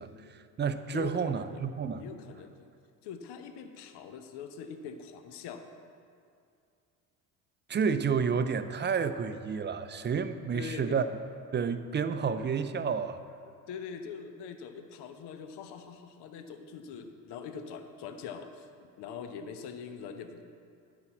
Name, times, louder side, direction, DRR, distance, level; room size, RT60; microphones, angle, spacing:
voice 1, 0.0-2.0 7.7-11.1 11.5-13.2, right 6 dB, 25° right, 11 dB, 0.5 m, -30 dB
voice 2, 0.9-1.5 2.0-2.7 3.0-5.6 10.5-11.0 13.7-20.4, left 6 dB, 55° left, 7 dB, 0.9 m, -43 dB
9.5 x 6.1 x 7.2 m, 2.4 s
hypercardioid pair, 60°, 48 cm